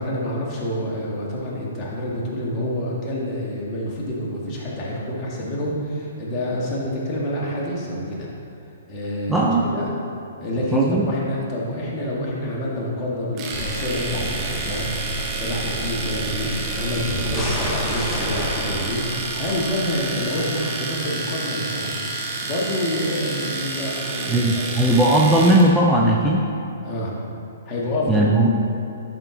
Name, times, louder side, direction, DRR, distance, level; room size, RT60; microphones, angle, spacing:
voice 1, 0.0-8.3 8.9-9.9 10.4-24.8 26.8-27.2 27.7-28.4, left 1 dB, 30° left, -5 dB, 1.8 m, -27 dB
voice 2, 9.3-9.7 10.7-11.1 24.3-26.5 28.1-28.6, right 1 dB, 5° right, -3 dB, 0.5 m, -18 dB
Domestic sounds home sounds, 13.4-25.7, right 3 dB, 30° right, 1.1 m, -30 dB
sound 1, 13.5-20.4, right 1 dB, 10° left, 1.1 m, -30 dB
10.5 x 4.4 x 3.9 m, 2.8 s
hypercardioid pair, 130°, 0 cm